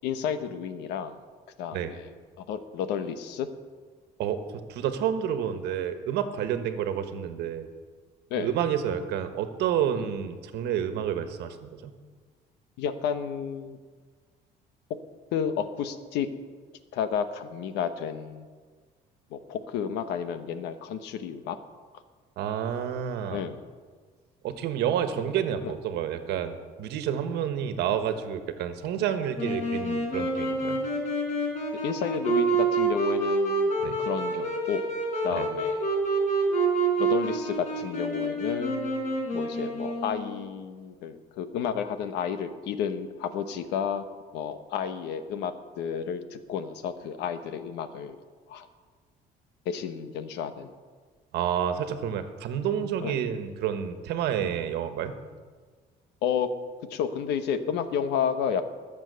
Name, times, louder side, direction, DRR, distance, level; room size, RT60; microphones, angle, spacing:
voice 1, 0.0-1.2 1.6-2.1 2.4-3.5 8.3-8.5 9.9-10.1 12.8-13.8 15.3-16.3 16.9-18.5 19.3-21.6 23.3-23.6 25.2-25.3 25.6-25.7 29.0-29.1 31.8-33.7 34.0-34.8 35.2-35.8 37.0-44.0 44.3-48.2 48.5-48.7 49.6-50.7 53.0-53.2 54.4-54.5 56.2-56.5 56.9-58.6, left 7 dB, 90° left, 10 dB, 1.1 m, -31 dB
voice 2, 4.7-7.7 8.4-11.9 22.4-23.4 24.4-30.8 33.8-34.0 35.3-35.5 51.3-55.1, right 9 dB, 85° right, 9 dB, 1.4 m, -29 dB
Wind instrument woodwind instrument, 29.3-40.5, right 3 dB, 45° left, 4.5 m, -28 dB
20.5 x 7.4 x 6.9 m, 1.5 s
cardioid pair, 110°, 17 cm